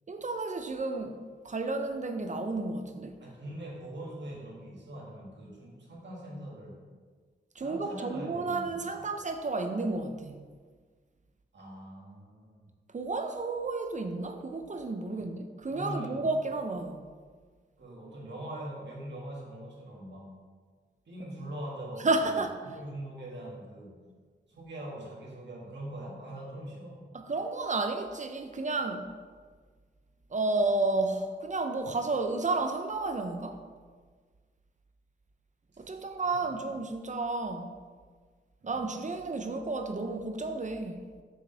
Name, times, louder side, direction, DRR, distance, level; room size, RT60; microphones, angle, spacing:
voice 1, 0.1-1.2 1.4-3.2 7.6-10.4 12.9-17.0 22.0-22.6 27.1-29.1 30.3-33.6 35.8-37.8 38.6-41.0, right 3 dB, 40° right, 6 dB, 0.6 m, -31 dB
voice 2, 3.2-6.8 7.6-9.0 11.5-12.7 15.1-15.3 15.7-16.3 17.8-20.3 21.1-24.0 24.5-27.1 35.7-36.4 38.6-38.8, right 1 dB, 70° right, -3 dB, 1.9 m, -42 dB
6.4 x 6.3 x 3.4 m, 1.6 s
wide cardioid pair, 80°, 19 cm